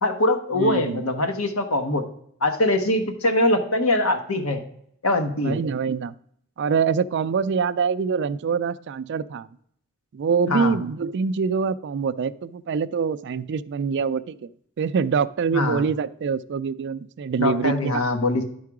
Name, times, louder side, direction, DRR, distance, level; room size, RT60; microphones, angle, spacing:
voice 1, 0.0-2.1 2.4-4.6 5.0-5.6 10.5-10.7 15.5-15.8 17.4-18.4, left 1 dB, 70° left, 6 dB, 1.2 m, -22 dB
voice 2, 0.5-1.1 5.4-6.1 6.6-9.5 10.1-14.5 14.8-18.1, right 6 dB, 50° right, 15 dB, 0.3 m, -25 dB
11.0 x 4.6 x 4.8 m, 0.68 s
head